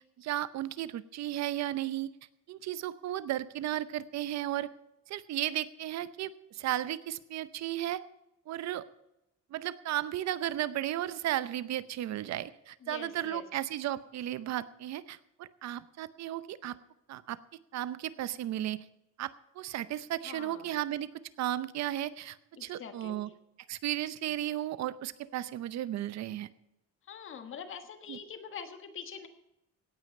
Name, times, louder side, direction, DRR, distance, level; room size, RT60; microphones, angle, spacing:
voice 1, 0.2-2.1 2.5-4.7 5.1-8.0 8.5-8.8 9.5-16.7 17.1-17.4 17.7-18.8 19.2-21.1 21.4-23.3 23.7-26.5 28.1-28.2, right 13 dB, 60° right, 16 dB, 0.8 m, -34 dB
voice 2, 12.8-13.5 20.2-20.8 22.6-23.2 27.1-29.3, left 7 dB, 45° left, 8 dB, 1.5 m, -44 dB
17.0 x 9.3 x 5.3 m, 0.89 s
cardioid pair, 180°, 30 cm